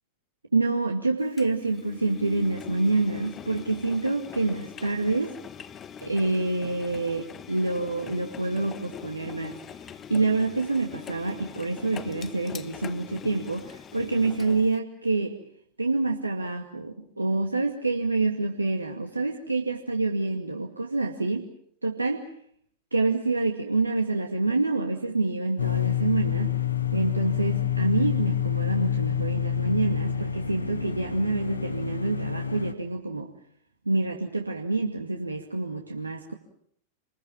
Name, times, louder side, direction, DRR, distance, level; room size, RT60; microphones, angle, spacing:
voice 1, 0.5-5.3 6.0-9.6 10.1-15.3 15.8-21.4 21.8-22.2 22.9-26.5 26.9-33.3 33.9-36.3, right 3 dB, 80° right, 2 dB, 2.2 m, -27 dB
Engine, 1.4-14.8, left 8 dB, 25° left, 1.3 m, -42 dB
sound 1, 25.6-32.7, left 9 dB, 75° left, 2.2 m, -28 dB
27.5 x 22.0 x 7.5 m, 0.69 s
figure-of-eight pair, 90°, 0 cm